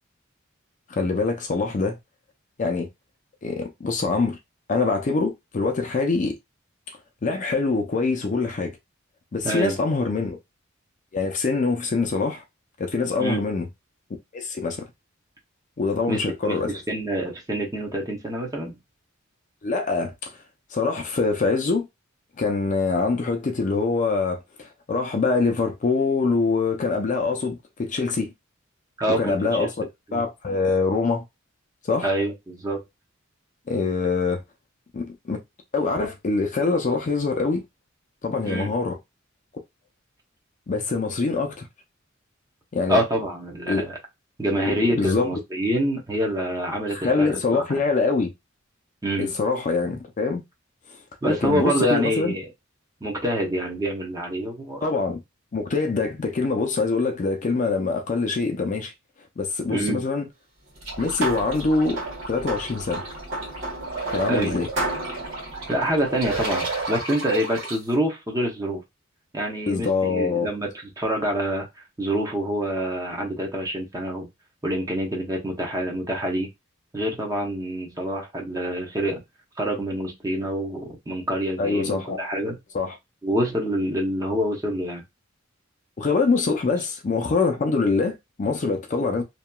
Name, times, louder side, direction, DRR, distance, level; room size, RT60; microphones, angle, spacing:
voice 1, 0.9-2.0 2.6-2.9 3.4-4.4 4.7-6.4 7.2-8.8 9.3-10.4 11.1-12.4 12.8-13.7 14.3-14.9 15.8-16.7 19.6-20.4 20.7-21.9 22.4-28.3 29.2-31.2 31.8-32.1 33.7-34.4 34.9-35.4 35.7-37.6 38.2-39.0 40.7-41.7 42.7-43.0 43.7-43.9 44.5-45.3 46.9-48.3 49.2-50.4 50.9-52.3 54.8-55.2 55.5-58.9 59.4-60.3 61.0-62.0 62.3-63.0 64.1-64.7 69.7-70.5 81.6-82.2 82.7-82.9 86.0-89.2, left 4 dB, 40° left, 0.4 m, -24 dB
voice 2, 9.4-9.8 13.2-13.4 16.1-18.8 29.0-29.7 30.1-30.2 32.0-32.8 38.5-38.7 42.9-44.0 44.4-47.8 49.0-49.3 51.2-52.4 53.0-54.8 59.7-60.0 64.3-64.6 65.7-68.8 69.3-70.7 71.0-71.7 72.0-74.3 74.6-76.5 76.9-79.2 79.6-82.6 83.2-85.0, right 1 dB, 15° right, 0.7 m, -26 dB
sound 1, 60.7-66.6, right 1 dB, 65° right, 1.1 m, -33 dB
sound 2, 60.8-67.8, right 3 dB, 80° right, 1.5 m, -33 dB
2.8 x 2.3 x 2.2 m
head